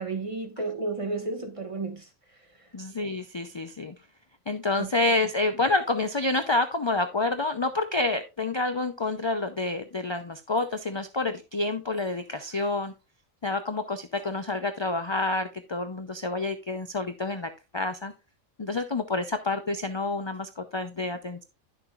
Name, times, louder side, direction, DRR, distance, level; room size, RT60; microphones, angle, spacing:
voice 1, 0.0-2.1 4.8-4.9, right 3 dB, 25° right, 1.4 m, -32 dB
voice 2, 2.7-3.9 4.5-12.9 13.4-18.1 18.6-21.4, left 2 dB, 40° left, 0.4 m, -28 dB
10.5 x 7.0 x 2.4 m
omnidirectional pair, 1.4 m